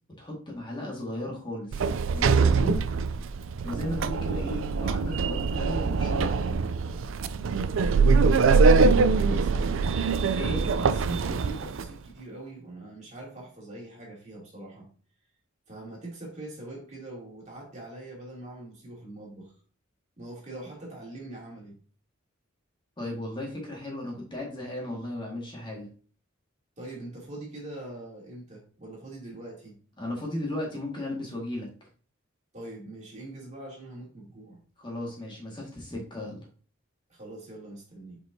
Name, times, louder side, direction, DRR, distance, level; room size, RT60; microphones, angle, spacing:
voice 1, 0.2-2.8 3.6-6.6 10.3-10.6 23.0-25.9 30.0-31.7 34.8-36.5, left 1 dB, 25° left, 1.8 m, -35 dB
Sliding door, 1.7-11.9, right 4 dB, 70° right, 0.4 m, -23 dB
voice 2, 8.2-9.8 10.6-14.9 15.7-19.5 20.2-21.7 26.8-29.8 32.5-34.6 37.1-38.2, right 2 dB, 35° right, 2.8 m, -43 dB
7.0 x 5.3 x 2.7 m
head